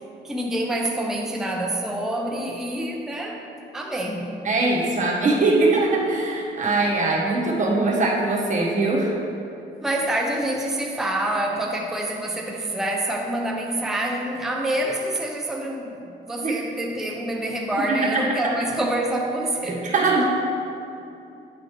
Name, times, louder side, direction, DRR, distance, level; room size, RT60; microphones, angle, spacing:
voice 1, 0.2-3.4 3.7-4.3 9.8-19.9, right 1 dB, ahead, 0 dB, 0.5 m, -26 dB
voice 2, 4.4-9.1 16.4-16.5 17.9-18.2 19.7-20.3, right 3 dB, 40° right, -4 dB, 1.5 m, -21 dB
8.8 x 4.1 x 3.2 m, 2.8 s
cardioid pair, 90°, 20 cm